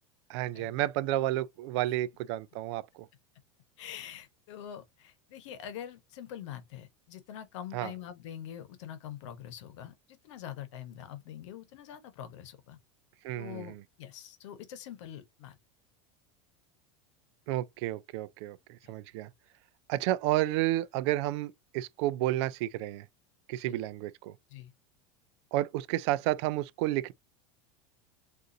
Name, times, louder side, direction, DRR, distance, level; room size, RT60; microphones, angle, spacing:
voice 1, 0.3-3.1 7.7-7.9 13.2-13.8 17.5-19.3 19.9-23.1 23.5-24.3 25.5-27.1, right 15 dB, 65° right, 0.4 m, -31 dB
voice 2, 3.8-12.8 13.3-15.6 18.8-18.9 23.7-23.8 24.5-24.7, left 10 dB, 75° left, 0.9 m, -44 dB
3.8 x 2.5 x 2.5 m
supercardioid pair, 125°, 15 cm